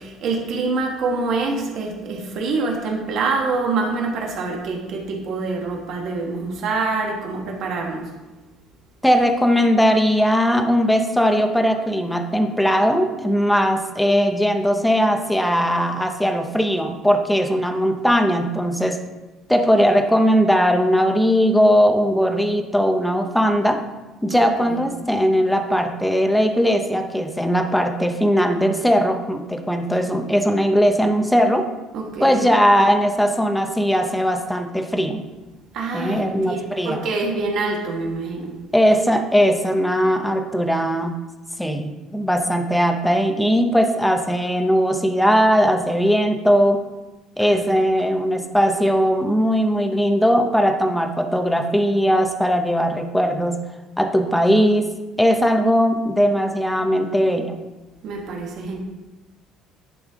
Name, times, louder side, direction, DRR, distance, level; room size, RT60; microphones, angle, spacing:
voice 1, 0.0-8.1 24.3-24.8 31.9-32.5 35.7-38.5 47.4-47.8 58.0-58.8, right 3 dB, 50° right, 0 dB, 1.5 m, -26 dB
voice 2, 9.0-19.0 19.5-23.8 24.2-31.7 32.2-35.2 35.9-37.0 38.7-41.1 41.6-46.8 47.4-53.6 54.0-54.9 55.2-57.6, equal, ahead, 5 dB, 0.6 m, -19 dB
10.5 x 5.3 x 3.6 m, 1.1 s
cardioid pair, 170°, 0 cm